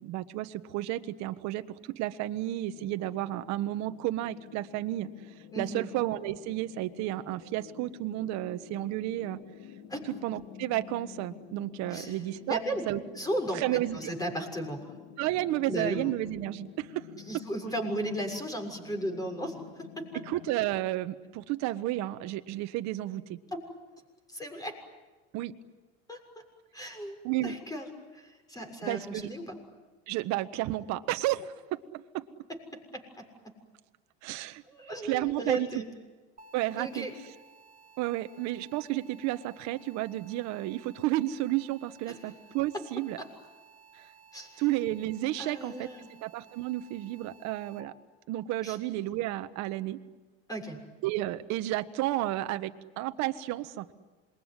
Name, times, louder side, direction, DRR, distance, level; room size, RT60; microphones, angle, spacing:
voice 1, 0.0-5.1 5.5-9.4 10.2-12.6 12.9-13.0 13.5-14.1 15.2-17.1 20.3-23.4 25.3-25.5 27.2-27.6 28.8-29.3 30.1-32.2 34.2-34.6 35.0-35.8 36.5-37.1 38.0-43.2 44.0-44.1 44.6-45.9 46.2-47.9 48.3-50.0 51.0-53.9, right 15 dB, 65° right, 10 dB, 1.5 m, -32 dB
sound 1, 2.7-20.5, left 11 dB, 70° left, 2.3 m, -50 dB
voice 2, 5.5-5.9 9.9-10.1 11.9-12.2 12.5-12.9 13.1-14.9 15.7-16.1 17.3-20.2 23.5-23.7 24.3-24.8 26.1-26.2 26.7-27.2 27.4-29.6 32.5-33.3 34.6-35.8 36.8-37.1 42.1-42.2 42.7-42.8 43.2-43.3 44.3-44.6 45.4-46.1 48.6-48.8 50.5-50.8, equal, 10° left, 4 dB, 6.6 m, -36 dB
sound 2, 36.4-47.8, right 5 dB, 25° right, 1.8 m, -57 dB
27.0 x 22.0 x 9.8 m, 1.3 s
supercardioid pair, 110°, 30 cm